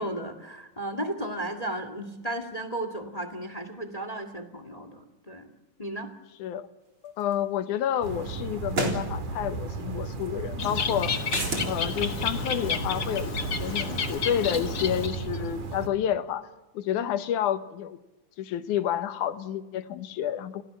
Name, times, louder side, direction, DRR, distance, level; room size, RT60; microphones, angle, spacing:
voice 1, 0.0-5.5 5.8-6.1 16.9-17.2, right 1 dB, 15° left, 9 dB, 1.7 m, -34 dB
voice 2, 7.0-11.3 11.6-16.5 16.7-18.0 18.4-20.6, left 10 dB, 90° left, 11 dB, 2.6 m, -30 dB
sound 1, 7.3-7.4 8.7-9.0 11.3-11.7, right 3 dB, 40° right, 4.5 m, -28 dB
sound 2, 8.0-15.9, right 3 dB, 85° right, 3.9 m, -34 dB
Bird, 10.6-15.4, left 6 dB, 40° left, 1.5 m, -31 dB
28.5 x 17.0 x 7.6 m, 1.0 s
omnidirectional pair, 3.4 m